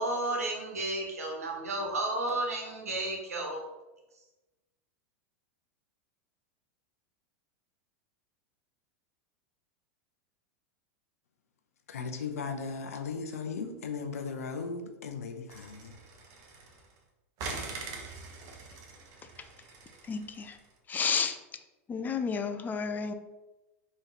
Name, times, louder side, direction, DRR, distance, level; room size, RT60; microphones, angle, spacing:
voice 1, 0.0-3.6, right 2 dB, 90° right, 1.2 m, -32 dB
voice 2, 11.9-16.0, left 5 dB, 85° left, 0.7 m, -37 dB
sound 1, 15.5-17.0 17.4-20.6, right 4 dB, 50° right, 1.0 m, -43 dB
voice 3, 20.0-20.6 20.9-21.4 21.9-23.1, left 6 dB, 25° left, 0.4 m, -31 dB
4.0 x 3.1 x 4.1 m
hypercardioid pair, 100°, 8 cm